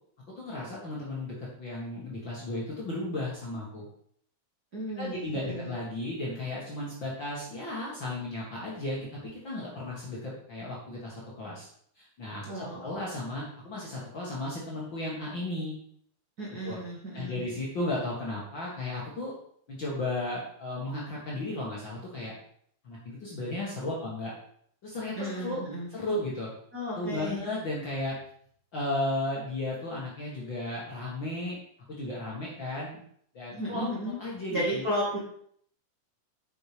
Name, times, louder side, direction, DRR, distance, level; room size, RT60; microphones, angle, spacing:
voice 1, 0.4-3.9 5.0-11.7 12.0-15.8 16.6-16.8 17.1-19.3 19.7-22.3 22.8-24.3 24.8-25.6 25.9-26.5 26.9-28.2 28.7-31.6 31.9-33.0 33.3-33.9 34.2-34.9, left 1 dB, 40° left, -5 dB, 2.1 m, -34 dB
voice 2, 4.7-5.8 12.5-12.9 16.4-17.5 25.1-25.9 26.7-27.4 33.5-34.2 34.5-35.2, equal, 30° right, -5 dB, 2.4 m, -34 dB
8.2 x 6.2 x 5.1 m, 0.64 s
omnidirectional pair, 3.9 m